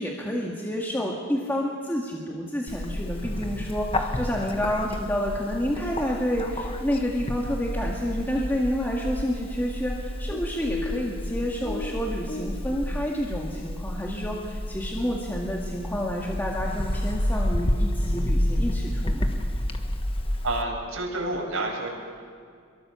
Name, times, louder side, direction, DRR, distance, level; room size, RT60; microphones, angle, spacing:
voice 1, 0.0-19.4, equal, 10° left, -2 dB, 2.0 m, -29 dB
Bird, 2.7-20.6, left 1 dB, 25° left, 1.3 m, -30 dB
voice 2, 20.4-21.9, right 2 dB, 85° right, -2 dB, 7.4 m, -29 dB
27.0 x 23.0 x 7.1 m, 2.2 s
head